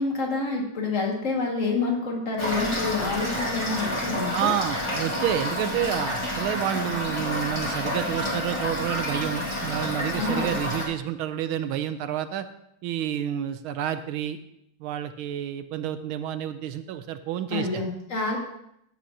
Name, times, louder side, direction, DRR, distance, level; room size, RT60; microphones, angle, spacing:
voice 1, 0.0-4.5 10.1-10.5 17.5-18.4, left 3 dB, 40° left, -1 dB, 2.3 m, -28 dB
Toilet flush / Fill (with liquid), 2.4-10.9, left 1 dB, 15° left, 1.6 m, -29 dB
voice 2, 4.3-12.5 12.8-14.4 14.8-17.8, right 10 dB, 90° right, 10 dB, 1.5 m, -29 dB
16.5 x 7.9 x 2.9 m, 0.75 s
omnidirectional pair, 2.2 m